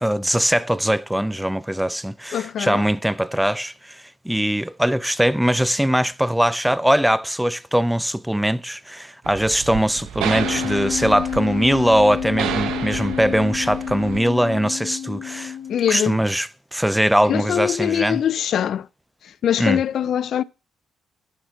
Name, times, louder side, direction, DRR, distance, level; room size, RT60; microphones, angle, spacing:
voice 1, 0.0-15.6 15.9-18.2 19.6-19.8, equal, 5° right, 0.4 m, -21 dB
voice 2, 2.3-2.9 15.7-16.2 17.3-18.9 19.2-20.4, left 9 dB, 65° left, 0.4 m, -23 dB
sound 1, 9.2-14.2, right 10 dB, 85° right, 0.9 m, -31 dB
Wind instrument woodwind instrument, 10.3-16.0, left 9 dB, 85° left, 0.8 m, -29 dB
7.9 x 5.8 x 5.5 m
cardioid pair, 90°, 0 cm